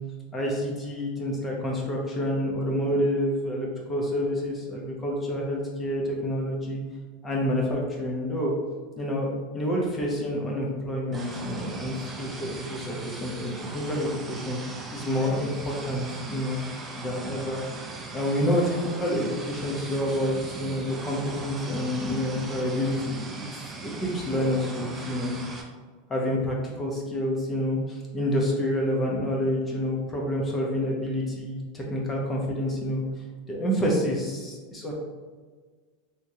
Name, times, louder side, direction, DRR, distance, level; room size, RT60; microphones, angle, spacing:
voice 1, 0.3-6.8 7.2-8.5 9.0-16.6 17.0-17.6 18.1-25.3 26.1-33.0 33.5-34.9, equal, 15° left, -2 dB, 0.7 m, -28 dB
sound 1, 11.1-25.6, right 3 dB, 20° right, 0.4 m, -39 dB
3.6 x 2.9 x 2.7 m, 1.5 s
supercardioid pair, 145°, 0 cm